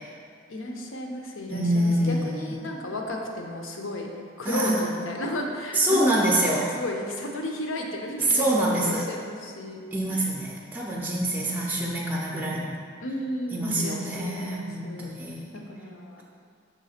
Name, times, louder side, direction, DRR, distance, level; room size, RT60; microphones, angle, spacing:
voice 1, 0.5-4.1 4.4-9.8 10.2-10.3 13.0-15.2 15.5-16.2, left 1 dB, 85° left, 1 dB, 0.7 m, -34 dB
voice 2, 1.5-2.3 4.4-4.9 5.7-6.7 8.3-9.1 9.9-12.8 13.5-15.5, right 1 dB, 10° right, -3 dB, 0.4 m, -25 dB
6.1 x 3.7 x 4.2 m, 2.1 s
head